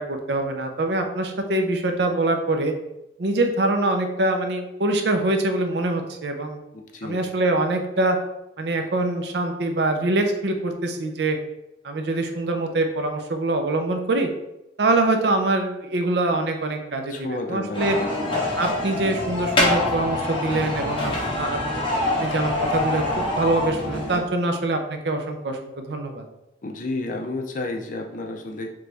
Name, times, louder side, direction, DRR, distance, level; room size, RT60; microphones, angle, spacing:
voice 1, 0.0-2.7 3.2-6.6 7.0-8.2 8.6-11.4 11.8-14.3 14.8-18.0 18.6-21.6 22.2-26.2, right 2 dB, 65° right, 5 dB, 0.6 m, -24 dB
voice 2, 6.7-7.2 17.1-18.3 26.6-28.7, left 2 dB, 45° left, 3 dB, 0.5 m, -31 dB
sound 1, 17.7-24.2, left 2 dB, 30° left, 1.0 m, -25 dB
3.9 x 3.3 x 3.4 m, 0.89 s
head